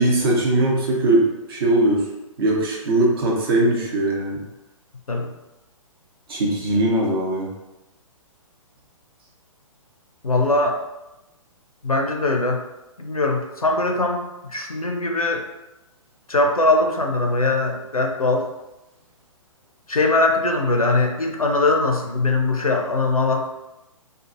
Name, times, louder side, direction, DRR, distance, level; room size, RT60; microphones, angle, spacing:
voice 1, 0.0-2.1 2.4-4.4 6.3-7.5, right 1 dB, 40° right, -2 dB, 0.7 m, -20 dB
voice 2, 10.2-10.8 11.8-12.6 13.0-14.2 14.5-15.5 16.3-18.5 19.9-23.5, left 2 dB, 85° left, 3 dB, 0.5 m, -21 dB
2.6 x 2.5 x 2.4 m, 0.98 s
figure-of-eight pair, 125°, 18 cm